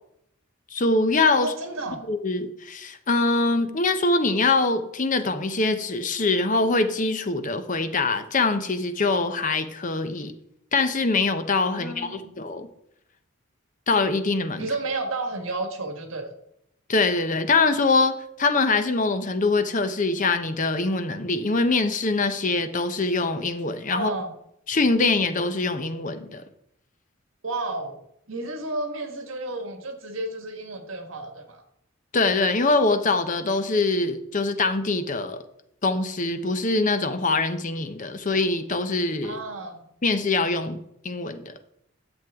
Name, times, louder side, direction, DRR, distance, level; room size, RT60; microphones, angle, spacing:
voice 1, 0.7-1.5 2.1-10.3 10.7-12.7 13.9-14.7 16.9-24.1 24.7-26.4 32.1-35.4 35.8-39.4 40.0-41.5, left 3 dB, 40° left, 0.7 m, -23 dB
voice 2, 1.4-2.1 11.7-12.3 14.6-16.3 23.9-24.3 27.4-28.0 28.3-31.6 39.2-39.9, right 2 dB, 80° right, 1.6 m, -32 dB
10.5 x 7.3 x 3.6 m
head